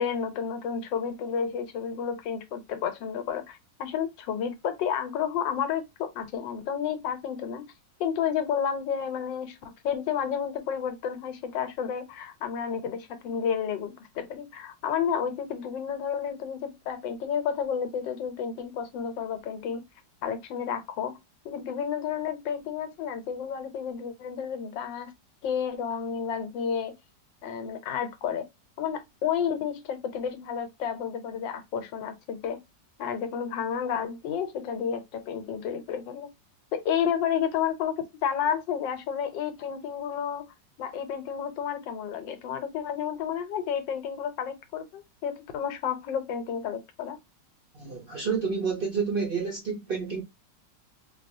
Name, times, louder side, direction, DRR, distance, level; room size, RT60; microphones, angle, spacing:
voice 1, 0.0-7.6 8.0-19.8 20.2-21.2 21.4-25.1 25.4-26.9 27.4-28.5 28.8-32.6 33.0-36.3 36.7-40.5 40.8-47.2, left 7 dB, 85° left, 1.4 m, -31 dB
voice 2, 47.7-50.2, right 5 dB, 65° right, 0.5 m, -29 dB
4.2 x 2.3 x 2.6 m
omnidirectional pair, 2.0 m